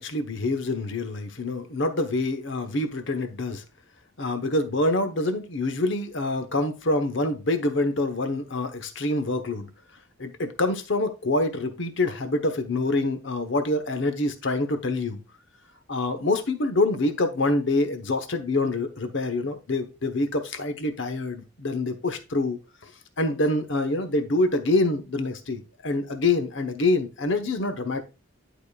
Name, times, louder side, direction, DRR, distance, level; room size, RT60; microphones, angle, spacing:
voice 1, 0.0-3.6 4.2-9.7 10.2-15.2 15.9-22.9 23.2-28.0, left 2 dB, 60° left, 1.0 m, -26 dB
11.0 x 5.0 x 2.3 m
head